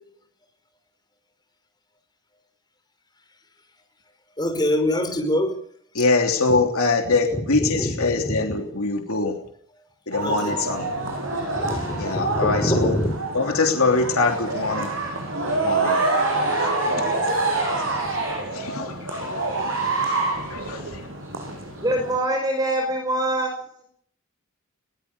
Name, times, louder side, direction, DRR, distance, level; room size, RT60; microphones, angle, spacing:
voice 1, 4.4-5.6 7.6-8.4 10.2-10.6 11.5-13.1, left 1 dB, 20° left, 5.4 m, -24 dB
voice 2, 5.9-9.4 10.1-10.9 12.0-13.0 13.3-14.9 15.6-20.2 20.5-21.0, left 3 dB, 80° left, 3.2 m, -24 dB
sound 1, 10.1-22.2, right 2 dB, 60° right, 8.0 m, -26 dB
voice 3, 21.8-23.9, right 1 dB, 20° right, 5.4 m, -24 dB
21.5 x 19.0 x 7.0 m
head